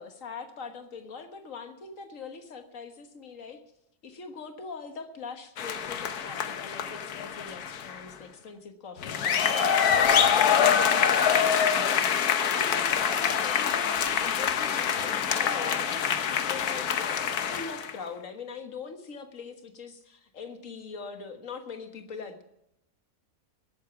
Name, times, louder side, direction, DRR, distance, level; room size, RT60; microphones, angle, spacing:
voice 1, 0.0-3.6 4.0-22.4, left 5 dB, 60° left, 7 dB, 1.8 m, -42 dB
sound 1, 5.6-8.0 9.0-17.9, left 8 dB, 80° left, 1.5 m, -25 dB
20.5 x 8.4 x 5.9 m, 0.79 s
omnidirectional pair, 1.6 m